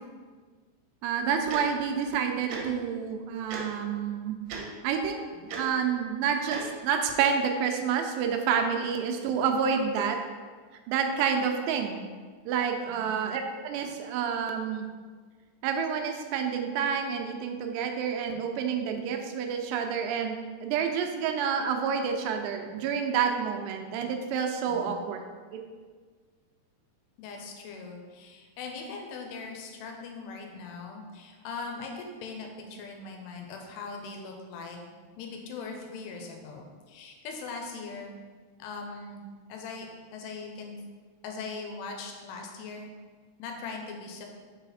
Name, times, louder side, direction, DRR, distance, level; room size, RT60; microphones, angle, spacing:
voice 1, 1.0-4.4 4.8-10.2 10.9-12.0 12.5-14.9 15.6-25.2 25.5-25.6, right 7 dB, 90° right, 4 dB, 2.8 m, -29 dB
Tick-tock, 1.5-1.6 2.5-2.6 3.5-3.6 4.5-4.6 5.5-5.6 6.5-6.6, right 5 dB, 75° right, 2.0 m, -35 dB
voice 2, 12.9-13.2 24.7-25.0 27.2-38.1 38.6-39.2 39.5-39.9 40.1-40.8 41.2-42.9 43.4-44.3, left 4 dB, 90° left, 2 dB, 2.8 m, -40 dB
6.2 x 4.0 x 4.2 m, 1.5 s
omnidirectional pair, 4.8 m